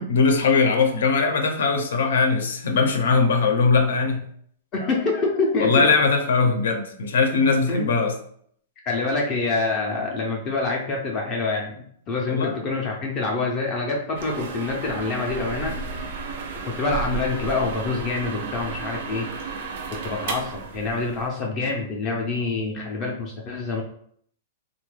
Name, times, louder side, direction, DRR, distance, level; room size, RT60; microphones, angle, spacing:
voice 1, 0.1-4.2 5.6-8.1 12.3-12.5, left 4 dB, 75° left, 5 dB, 0.6 m, -20 dB
voice 2, 4.7-5.9 7.3-7.9 8.9-15.7 16.6-19.3 19.9-23.8, left 3 dB, 20° left, 0 dB, 0.4 m, -26 dB
sound 1, 14.2-21.3, right 5 dB, 45° right, 0.4 m, -33 dB
3.7 x 2.2 x 3.1 m, 0.64 s
supercardioid pair, 180°, 0 cm